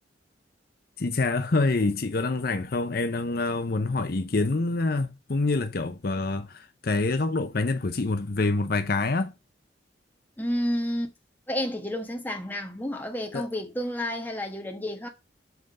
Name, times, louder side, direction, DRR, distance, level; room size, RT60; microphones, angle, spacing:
voice 1, 1.0-9.3 13.3-13.5, left 3 dB, 55° left, 0.7 m, -26 dB
voice 2, 10.4-11.1 11.5-15.1, equal, 10° left, 1.4 m, -30 dB
8.1 x 3.7 x 5.4 m
head